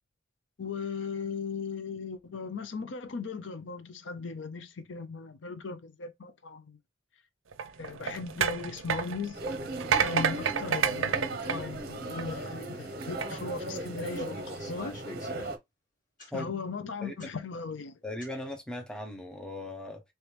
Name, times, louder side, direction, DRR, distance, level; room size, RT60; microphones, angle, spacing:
voice 1, 0.6-6.8 7.8-9.4 10.0-15.0 16.3-18.0, left 4 dB, 70° left, 0.5 m, -37 dB
sound 1, 7.5-12.5 13.0-13.3, right 7 dB, 90° right, 0.5 m, -30 dB
sound 2, 9.3-15.6, right 1 dB, 50° right, 0.6 m, -37 dB
sound 3, 14.1-15.6 16.2-16.3 17.2-17.3 18.2-18.3, equal, 40° left, 1.5 m, -46 dB
voice 2, 18.0-20.0, left 1 dB, 5° left, 0.6 m, -38 dB
3.1 x 3.0 x 3.2 m
head